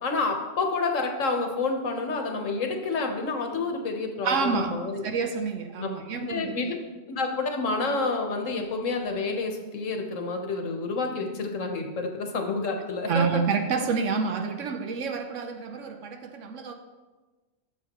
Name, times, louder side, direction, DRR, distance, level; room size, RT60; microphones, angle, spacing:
voice 1, 0.0-5.1 5.8-5.9 6.2-6.7 7.1-13.2, left 3 dB, 85° left, 3 dB, 1.4 m, -29 dB
voice 2, 4.2-6.8 13.1-16.7, right 5 dB, 80° right, 6 dB, 1.1 m, -28 dB
12.5 x 7.1 x 3.0 m, 1.2 s
omnidirectional pair, 1.3 m